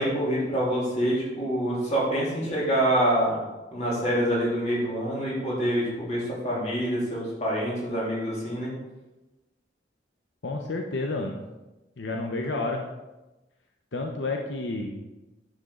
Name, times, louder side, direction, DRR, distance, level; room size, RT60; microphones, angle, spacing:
voice 1, 0.0-3.4 3.7-8.7, right 1 dB, 40° left, -6 dB, 3.2 m, -26 dB
voice 2, 10.4-11.4 12.0-12.9 13.9-15.0, left 2 dB, 85° left, 1 dB, 0.8 m, -30 dB
9.7 x 6.5 x 3.8 m, 1.1 s
head